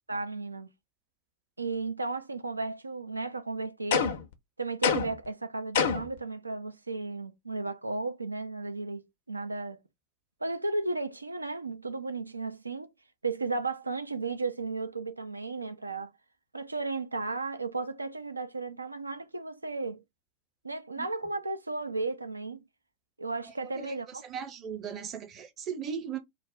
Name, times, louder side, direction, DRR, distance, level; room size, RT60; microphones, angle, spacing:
voice 1, 0.1-0.7 1.6-4.1 4.6-9.8 10.4-12.9 13.2-16.1 16.5-20.0 20.6-22.6 23.2-24.2, right 3 dB, 80° right, 0.4 m, -34 dB
sound 1, 3.9-4.3 4.8-5.3 5.7-6.2, left 6 dB, 55° left, 0.5 m, -26 dB
voice 2, 24.2-26.2, right 7 dB, 30° right, 0.7 m, -37 dB
2.4 x 2.0 x 3.6 m
figure-of-eight pair, 90°, 0 cm